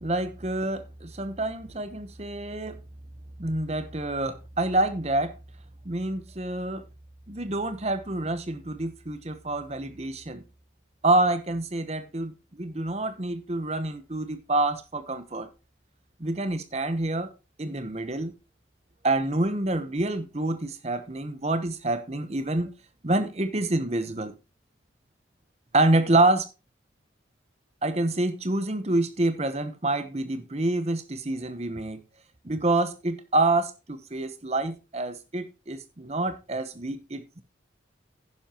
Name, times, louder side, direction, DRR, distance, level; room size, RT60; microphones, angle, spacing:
voice 1, 0.0-2.8 3.4-5.3 5.8-6.8 7.3-10.4 11.0-12.3 12.6-15.5 16.2-17.3 17.6-18.3 19.0-22.7 23.0-24.3 25.7-26.5 27.8-32.0 32.4-37.4, right 2 dB, 35° right, 1.0 m, -27 dB
11.0 x 10.0 x 2.9 m
head